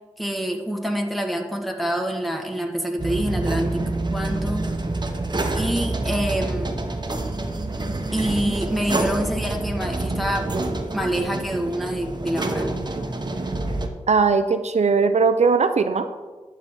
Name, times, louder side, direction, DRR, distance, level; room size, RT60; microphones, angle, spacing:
voice 1, 0.2-3.8 4.1-4.7 5.5-6.8 8.1-10.4 10.9-12.7, equal, ahead, 1 dB, 1.9 m, -26 dB
sound 1, 3.0-13.9, right 2 dB, 35° right, 1.1 m, -27 dB
voice 2, 14.1-16.1, right 4 dB, 70° right, 9 dB, 0.5 m, -19 dB
11.0 x 7.6 x 3.8 m, 1.3 s
cardioid pair, 45°, 12 cm